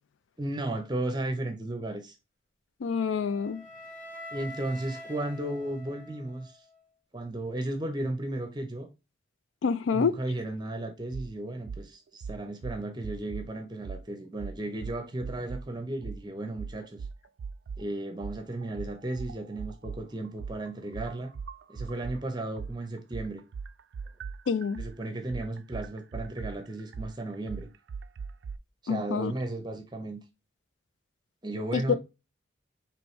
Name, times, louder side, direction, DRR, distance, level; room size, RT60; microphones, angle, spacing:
voice 1, 0.4-2.2 4.3-6.6 7.1-8.9 9.9-17.0 17.8-21.3 21.7-23.4 24.8-27.7 28.8-30.2 31.4-32.0, right 1 dB, 20° right, 0.6 m, -34 dB
voice 2, 2.8-3.6 9.6-10.2 24.5-24.8 28.9-29.3 31.7-31.8, left 5 dB, 80° left, 0.4 m, -27 dB
Wind instrument woodwind instrument, 2.9-7.0, left 1 dB, 40° left, 1.2 m, -46 dB
sound 1, 11.1-11.3 11.7-11.8 12.2-13.5 13.8-14.0 14.4-15.7 16.0-16.2 16.6-17.8 18.2-22.2 22.6-28.6, right 5 dB, 65° right, 0.3 m, -39 dB
4.6 x 3.1 x 3.1 m
head